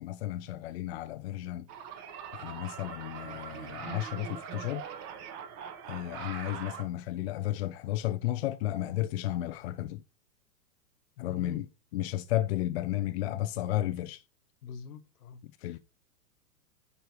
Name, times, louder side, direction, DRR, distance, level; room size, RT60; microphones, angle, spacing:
voice 1, 0.0-1.7 2.3-4.8 5.9-10.0 11.2-14.2 15.6-15.8, left 14 dB, 40° left, 0.4 m, -33 dB
sound 1, 1.7-6.8, right 8 dB, 35° right, 1.2 m, -42 dB
voice 2, 11.3-11.6 14.6-15.4, left 7 dB, 65° left, 1.2 m, -43 dB
9.7 x 3.3 x 4.7 m
hypercardioid pair, 115°, 50 cm